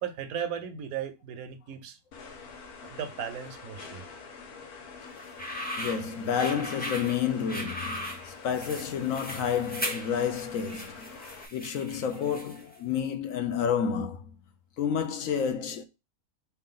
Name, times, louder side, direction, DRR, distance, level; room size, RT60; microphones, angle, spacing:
voice 1, 0.0-2.0 2.8-4.0, right 8 dB, 80° right, 1.1 m, -36 dB
sound 1, 2.1-11.5, left 4 dB, 85° left, 1.4 m, -46 dB
sound 2, 5.2-12.7, equal, 10° left, 0.7 m, -38 dB
voice 2, 5.8-11.1 11.5-14.3 14.8-15.8, left 7 dB, 65° left, 1.0 m, -30 dB
4.3 x 3.3 x 3.7 m
omnidirectional pair, 1.6 m